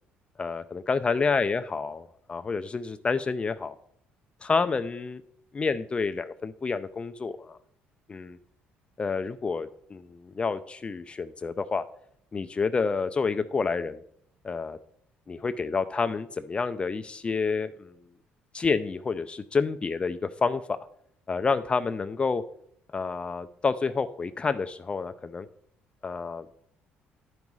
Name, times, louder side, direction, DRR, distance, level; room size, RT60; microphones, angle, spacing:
voice 1, 0.4-3.8 4.4-5.2 5.5-7.6 8.1-8.4 9.0-11.8 12.3-14.0 14.4-14.8 15.3-17.9 18.5-20.8 21.3-22.4 22.9-25.5 26.0-26.5, left 4 dB, 30° left, 10 dB, 0.4 m, -29 dB
11.0 x 5.4 x 4.7 m, 0.69 s
cardioid pair, 95°, 4 cm